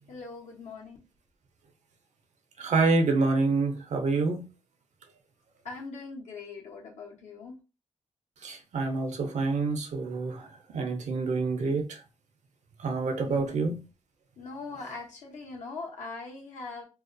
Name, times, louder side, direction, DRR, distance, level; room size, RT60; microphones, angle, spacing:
voice 1, 0.1-1.0 5.6-7.6 13.2-13.7 14.4-16.8, left 4 dB, 80° left, 0.8 m, -41 dB
voice 2, 2.6-4.4 8.4-12.0 12.8-13.7, right 3 dB, 70° right, 0.6 m, -27 dB
2.3 x 2.1 x 2.5 m
cardioid pair, 55°, 12 cm